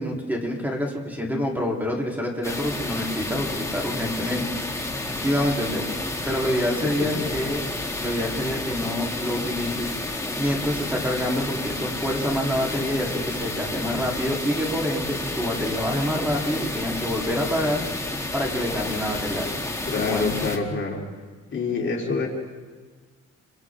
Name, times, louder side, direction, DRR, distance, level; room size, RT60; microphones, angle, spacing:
voice 1, 0.0-4.5 5.2-7.6 8.0-9.9 10.4-17.8 18.3-19.5 19.9-20.3, equal, 5° right, -2 dB, 3.5 m, -27 dB
sound 1, 2.4-20.6, left 2 dB, 10° left, 2.3 m, -30 dB
voice 2, 6.8-7.3 19.9-21.0 21.5-22.3, left 4 dB, 40° left, -2 dB, 3.5 m, -26 dB
29.5 x 25.0 x 3.7 m, 1.4 s
cardioid pair, 100°, 30 cm